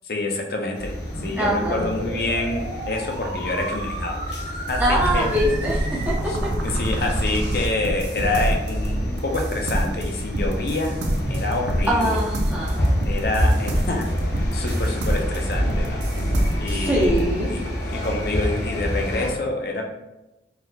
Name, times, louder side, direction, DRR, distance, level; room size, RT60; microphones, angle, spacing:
voice 1, 0.0-0.9 1.2-4.2 4.6-5.3 6.3-6.4 6.6-11.0 11.3-12.2 13.0-14.0 14.5-16.0 16.6-17.2 17.5-17.6 17.9-19.9, left 2 dB, 60° left, 2 dB, 0.5 m, -27 dB
sound 1, 0.7-19.3, equal, 75° left, 0.9 m, -28 dB
sound 2, 1.1-6.1, right 2 dB, 65° right, 1.1 m, -34 dB
voice 2, 1.4-1.9 4.8-6.0 11.9-12.8 16.6-17.5, equal, 10° right, -6 dB, 0.7 m, -23 dB
sound 3, 4.7-17.2, right 1 dB, 80° right, 0.5 m, -27 dB
3.9 x 2.8 x 2.3 m, 0.96 s
head